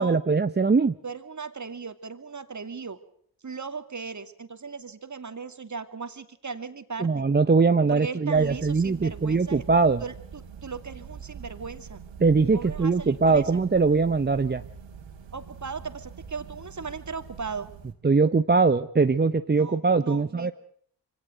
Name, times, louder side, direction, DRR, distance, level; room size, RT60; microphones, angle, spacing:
voice 1, 0.0-0.9 7.0-10.0 12.2-14.6 18.0-20.5, right 4 dB, 20° right, 10 dB, 0.9 m, -21 dB
voice 2, 1.0-3.0 3.4-7.3 7.9-9.6 10.0-12.0 12.5-13.6 15.3-17.7 19.5-20.5, right 5 dB, 35° right, 9 dB, 2.6 m, -37 dB
sound 1, 8.3-17.9, right 6 dB, 70° right, 3.4 m, -44 dB
24.5 x 17.5 x 8.0 m, 0.64 s
hypercardioid pair, 45°, 47 cm